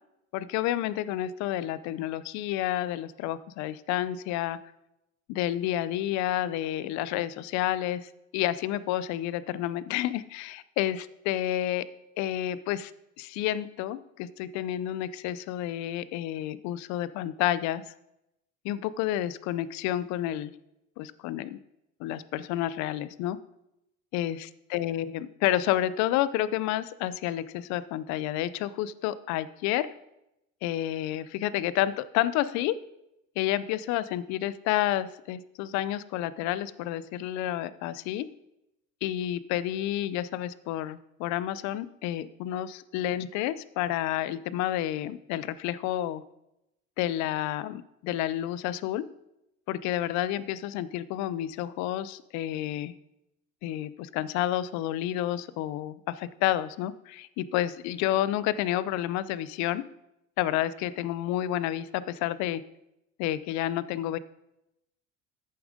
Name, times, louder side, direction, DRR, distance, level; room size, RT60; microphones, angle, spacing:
voice 1, 0.3-4.6 5.3-11.9 12.2-12.9 13.2-17.8 18.6-20.5 21.0-21.6 22.0-23.4 24.1-29.9 30.6-32.8 33.4-38.2 39.0-46.2 47.0-49.0 49.7-52.9 53.6-59.8 60.4-62.6 63.2-64.2, left 13 dB, 70° left, 16 dB, 0.5 m, -30 dB
8.7 x 7.1 x 5.1 m, 0.86 s
cardioid pair, 155°, 29 cm